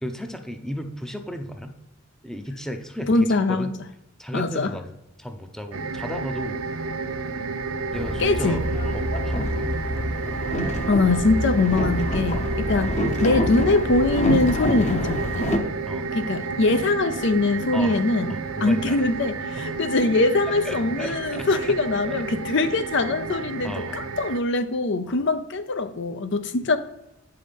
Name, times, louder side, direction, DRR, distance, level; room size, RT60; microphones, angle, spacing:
voice 1, 0.0-1.8 2.2-3.7 4.2-6.7 7.9-8.7 8.9-9.5 15.9-16.1 17.7-18.0 18.3-19.0 19.6-19.7 20.6-21.8 22.0-22.1 23.6-24.1 25.1-25.2, equal, ahead, 0.7 m, -34 dB
voice 2, 3.1-3.7 4.3-4.7 8.2-8.6 10.6-15.5 16.1-18.3 18.6-26.8, left 2 dB, 60° left, 0.6 m, -23 dB
sound 1, 5.7-24.4, right 3 dB, 90° right, 0.6 m, -31 dB
Boat Water vehicle, 7.9-15.6, equal, 35° left, 0.9 m, -27 dB
8.6 x 5.7 x 5.2 m
head